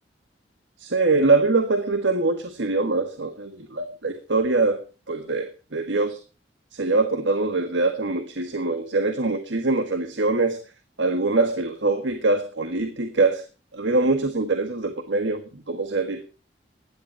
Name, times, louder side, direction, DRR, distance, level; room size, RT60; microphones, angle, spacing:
voice 1, 0.8-4.8 5.1-6.2 6.7-10.6 11.0-13.4 13.7-16.2, right 3 dB, 85° right, 8 dB, 1.6 m, -23 dB
16.5 x 11.0 x 4.4 m, 0.34 s
head